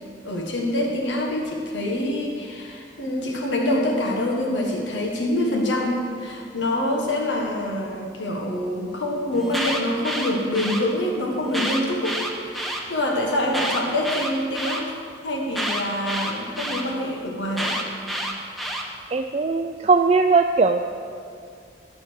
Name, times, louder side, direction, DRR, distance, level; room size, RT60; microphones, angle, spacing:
voice 1, 0.2-14.9 15.2-17.8, left 1 dB, 90° left, 0 dB, 1.5 m, -25 dB
Alarm, 9.3-10.8 11.5-12.8 13.5-14.8 15.5-16.8 17.5-18.8, equal, ahead, 0.9 m, -28 dB
voice 2, 19.1-20.9, right 4 dB, 35° right, 6 dB, 0.3 m, -19 dB
12.5 x 7.1 x 6.4 m, 2.2 s
head